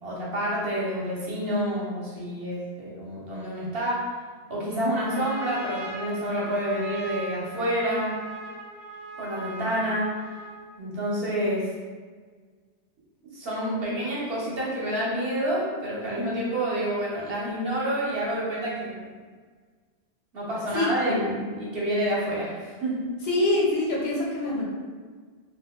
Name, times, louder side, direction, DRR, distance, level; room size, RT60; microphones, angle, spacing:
voice 1, 0.0-8.2 9.2-10.2 10.8-11.7 13.2-19.1 20.3-23.1, equal, 65° right, -6 dB, 1.1 m, -28 dB
Trumpet, 4.7-10.7, right 2 dB, 40° left, 1.4 m, -39 dB
voice 2, 20.7-21.2 23.3-24.7, left 2 dB, 70° left, -4 dB, 1.0 m, -25 dB
3.8 x 2.5 x 2.3 m, 1.5 s
omnidirectional pair, 1.1 m